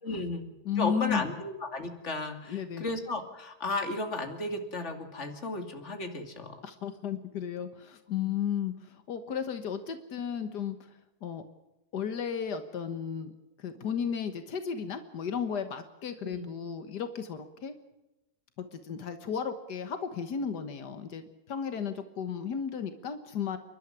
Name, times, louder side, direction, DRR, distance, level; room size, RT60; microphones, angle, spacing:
voice 1, 0.0-0.5 0.8-6.6 16.2-16.5, left 2 dB, 45° left, 5 dB, 2.9 m, -34 dB
voice 2, 0.7-1.2 2.5-2.8 6.6-10.8 11.2-11.4 11.9-13.3 13.6-17.8 18.6-23.6, left 7 dB, 85° left, 9 dB, 1.9 m, -34 dB
29.5 x 12.0 x 9.7 m, 0.96 s
omnidirectional pair, 1.7 m